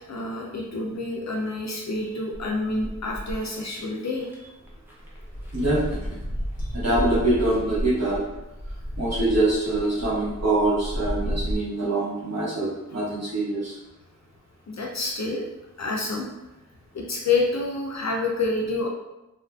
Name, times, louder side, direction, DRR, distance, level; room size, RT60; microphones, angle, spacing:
voice 1, 0.1-4.5 6.6-7.0 14.7-15.4 15.8-16.3 16.9-18.9, left 3 dB, 60° left, -1 dB, 0.4 m, -28 dB
sound 1, 2.3-3.5 4.2-4.3 4.7-11.5, equal, 5° right, 0.6 m, -32 dB
voice 2, 5.5-6.2 6.7-8.2 9.0-13.7, right 2 dB, 55° right, -9 dB, 1.3 m, -24 dB
2.7 x 2.4 x 2.3 m, 0.95 s
wide cardioid pair, 60°, 31 cm